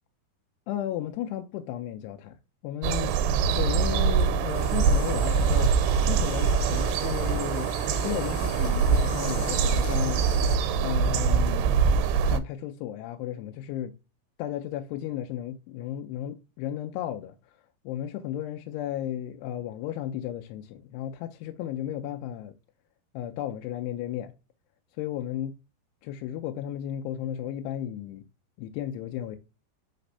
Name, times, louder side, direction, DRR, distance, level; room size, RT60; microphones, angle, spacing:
voice 1, 0.7-2.4 2.6-3.2 3.5-5.7 6.0-7.7 8.0-10.2 10.8-11.8 12.2-13.9 14.4-17.6 17.9-22.5 23.1-24.3 25.0-25.5 26.0-28.2 28.6-29.4, left 11 dB, 90° left, 2.6 m, -34 dB
sound 1, 2.8-12.4, right 6 dB, 90° right, 2.7 m, -24 dB
sound 2, 4.5-10.6, left 8 dB, 70° left, 2.0 m, -40 dB
5.9 x 3.3 x 5.3 m
omnidirectional pair, 4.6 m